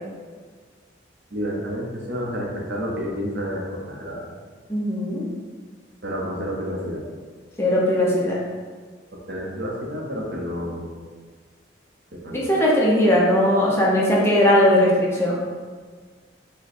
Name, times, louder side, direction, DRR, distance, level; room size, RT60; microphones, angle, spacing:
voice 1, 1.3-4.2 6.0-7.0 9.3-10.9 12.1-12.4, equal, 60° right, -1 dB, 0.8 m, -29 dB
voice 2, 4.7-5.3 7.6-8.4 12.3-15.5, left 1 dB, 15° left, -5 dB, 0.7 m, -19 dB
5.1 x 2.2 x 4.2 m, 1.5 s
head